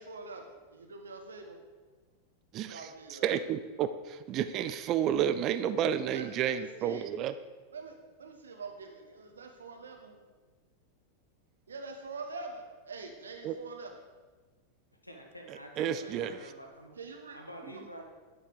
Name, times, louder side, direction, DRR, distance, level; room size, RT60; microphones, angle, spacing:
voice 1, 0.0-1.6 2.7-3.4 6.1-7.1 7.7-10.2 11.7-14.0 16.0-16.3 17.0-17.4, right 3 dB, 70° right, 4 dB, 1.3 m, -45 dB
voice 2, 3.1-7.3 13.4-13.5 15.8-16.4, right 9 dB, 35° right, 12 dB, 0.5 m, -31 dB
voice 3, 15.0-17.0 17.3-18.0, equal, 90° left, 2 dB, 1.5 m, -47 dB
11.5 x 5.6 x 6.6 m, 1.3 s
figure-of-eight pair, 90°, 0 cm